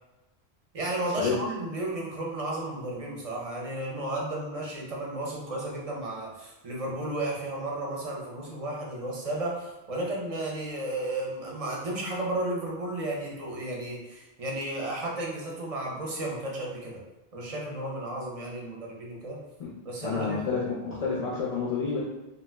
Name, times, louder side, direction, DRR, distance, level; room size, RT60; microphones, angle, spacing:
voice 1, 0.7-17.0 17.3-19.4 19.8-20.4, right 1 dB, 45° right, -3 dB, 0.5 m, -33 dB
voice 2, 20.0-22.0, left 5 dB, 55° left, -5 dB, 0.4 m, -29 dB
2.5 x 2.0 x 3.2 m, 0.99 s
omnidirectional pair, 1.1 m